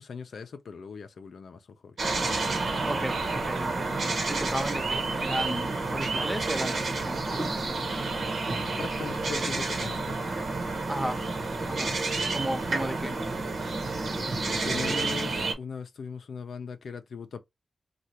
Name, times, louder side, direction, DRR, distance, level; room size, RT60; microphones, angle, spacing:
voice 1, 0.0-1.9 8.8-10.4 14.7-17.4, left 5 dB, 80° left, 0.5 m, -39 dB
sound 1, 2.0-15.5, right 3 dB, 75° right, 1.0 m, -30 dB
voice 2, 2.8-4.0 4.3-7.6 10.9-11.2 11.7-11.9 12.3-13.2, right 1 dB, 15° right, 1.0 m, -34 dB
3.2 x 2.3 x 2.8 m
cardioid pair, 45°, 0 cm